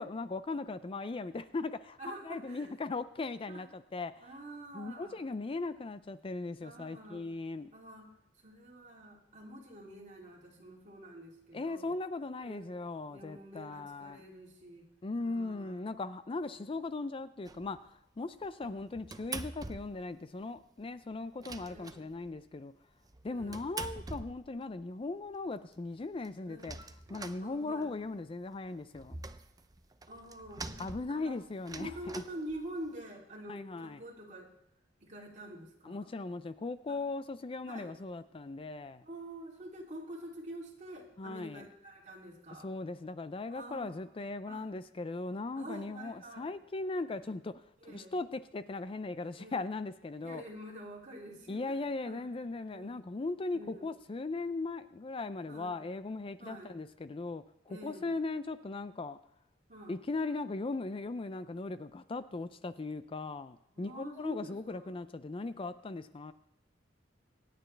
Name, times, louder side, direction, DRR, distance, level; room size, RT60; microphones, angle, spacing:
voice 1, 0.0-2.0 2.2-4.3 4.7-7.7 11.5-14.2 15.0-22.7 23.2-26.8 27.1-29.2 30.8-32.2 33.5-34.0 35.8-39.0 41.2-41.6 42.6-50.4 51.5-59.2 59.9-66.3, left 3 dB, 30° left, 13 dB, 0.4 m, -38 dB
voice 2, 2.0-2.7 3.5-3.6 4.2-5.2 6.6-7.3 7.7-8.1 8.4-11.9 12.4-12.7 13.1-14.9 15.2-15.8 18.6-18.8 21.5-22.0 23.3-23.7 26.4-26.8 27.4-27.9 30.1-31.4 31.8-34.5 35.0-36.1 36.9-37.0 37.7-38.0 39.0-42.7 43.5-44.0 44.5-44.7 45.5-46.5 47.1-47.3 47.8-48.1 49.4-49.6 50.2-52.2 52.7-53.0 53.5-53.9 55.5-55.8 56.4-56.8 57.7-58.1 59.7-60.0 63.7-64.9, right 1 dB, 40° right, -3 dB, 2.9 m, -47 dB
sound 1, 17.5-17.9 18.4-20.2 20.4-20.5 20.8-20.9 21.1-22.5 23.0-24.8 25.3-25.4 25.7-25.8 26.0-28.1 28.4-33.0, right 3 dB, 20° right, 0.6 m, -45 dB
25.5 x 9.2 x 3.3 m, 0.76 s
head